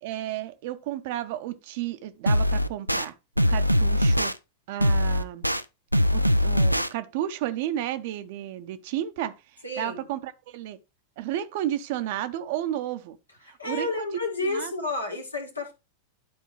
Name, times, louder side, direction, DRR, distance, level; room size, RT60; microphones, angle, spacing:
voice 1, 0.0-3.1 3.5-4.3 4.7-5.5 6.1-9.3 9.8-10.8 11.2-13.2 13.5-14.1 14.4-14.7, right 12 dB, 50° right, 0.7 m, -32 dB
sound 1, 2.3-3.0 3.4-4.3 4.8-5.6 5.9-6.9, equal, 90° right, 0.3 m, -22 dB
voice 2, 9.6-10.0 13.6-15.7, left 3 dB, 80° left, 1.9 m, -30 dB
11.5 x 4.5 x 3.2 m
figure-of-eight pair, 90°, 0 cm